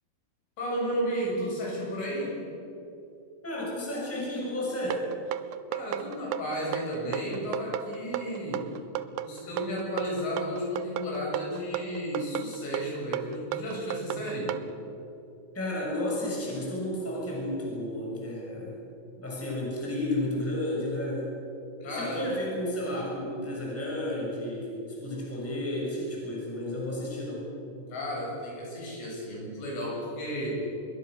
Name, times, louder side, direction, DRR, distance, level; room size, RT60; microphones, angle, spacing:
voice 1, 0.6-2.4 5.7-8.7 9.2-14.5 21.8-22.2 27.9-30.6, equal, 90° left, -4 dB, 10.5 m, -33 dB
voice 2, 3.4-5.1 15.5-18.8 19.2-21.3 21.8-27.5, left 1 dB, 5° left, -4 dB, 6.2 m, -32 dB
sound 1, 4.9-14.7, right 13 dB, 80° right, 2.9 m, -34 dB
25.5 x 22.5 x 6.8 m, 2.8 s
omnidirectional pair, 5.4 m